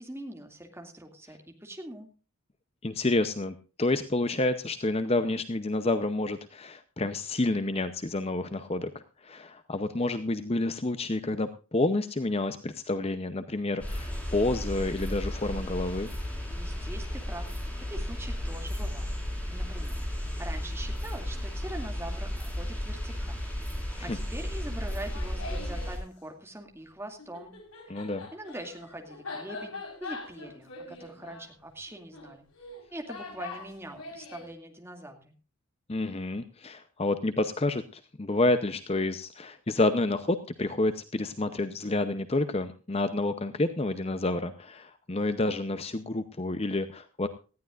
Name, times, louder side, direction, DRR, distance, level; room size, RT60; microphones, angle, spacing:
voice 1, 0.0-2.1 16.5-17.5 17.8-19.2 19.5-27.5 27.9-28.0 28.3-29.7 30.0-32.4 32.9-35.3, right 1 dB, 10° right, 3 dB, 2.4 m, -43 dB
voice 2, 2.8-16.1 24.0-24.2 27.9-28.3 35.9-47.3, left 2 dB, 30° left, 10 dB, 0.7 m, -29 dB
sound 1, 13.8-26.0, left 1 dB, 5° left, 4.8 m, -34 dB
Laughter, 24.9-26.0 27.2-34.5, left 3 dB, 80° left, 4.8 m, -43 dB
19.0 x 14.0 x 2.5 m, 0.35 s
head